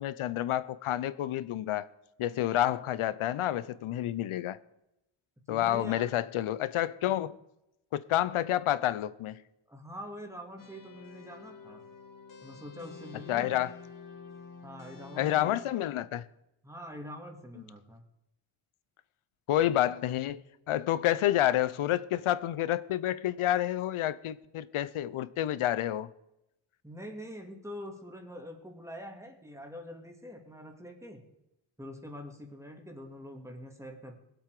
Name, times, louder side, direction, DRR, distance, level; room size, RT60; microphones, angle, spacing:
voice 1, 0.0-1.9 2.2-4.6 5.5-7.3 7.9-9.4 13.3-13.7 15.2-16.2 19.5-26.1, left 12 dB, 90° left, 0.8 m, -29 dB
voice 2, 5.5-6.2 9.7-11.8 12.4-13.6 14.6-15.8 16.6-18.0 26.8-31.2 31.8-34.2, equal, 5° right, 2.5 m, -45 dB
sound 1, 10.6-15.7, left 5 dB, 40° left, 2.4 m, -48 dB
21.0 x 8.0 x 4.9 m
wide cardioid pair, 125°, 48 cm